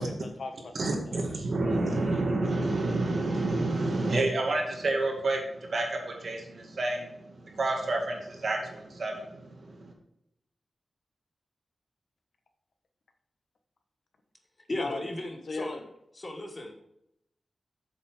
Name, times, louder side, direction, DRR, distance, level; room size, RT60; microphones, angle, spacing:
voice 1, 0.0-1.2 14.8-15.0 15.5-15.8, left 3 dB, 70° left, 6 dB, 1.1 m, -37 dB
voice 2, 0.8-9.9, right 2 dB, 65° right, 1 dB, 2.2 m, -29 dB
voice 3, 14.7-15.8 16.1-16.7, left 1 dB, 30° left, 4 dB, 1.5 m, -35 dB
8.1 x 7.0 x 4.9 m, 0.79 s
wide cardioid pair, 125°, 0 cm